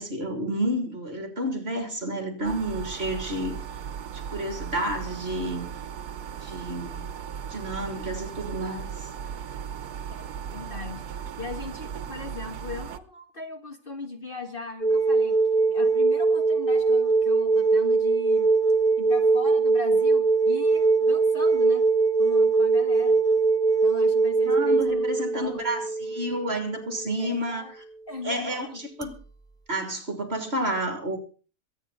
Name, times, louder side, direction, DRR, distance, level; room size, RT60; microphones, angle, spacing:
voice 1, 0.0-3.6 4.3-5.7 6.4-7.1 7.4-8.9 24.5-27.6 28.2-29.2 29.7-31.2, right 1 dB, 40° right, 3.4 m, -30 dB
sound 1, 2.4-13.0, right 8 dB, 80° right, 1.5 m, -37 dB
voice 2, 10.5-11.0 11.4-15.4 15.7-18.5 19.0-21.9 22.2-23.2 23.8-25.6 27.2-27.7 28.1-28.8, left 3 dB, 35° left, 1.6 m, -38 dB
sound 2, 14.8-27.2 29.0-29.1, right 4 dB, 5° left, 0.7 m, -22 dB
23.5 x 9.2 x 4.1 m
omnidirectional pair, 1.6 m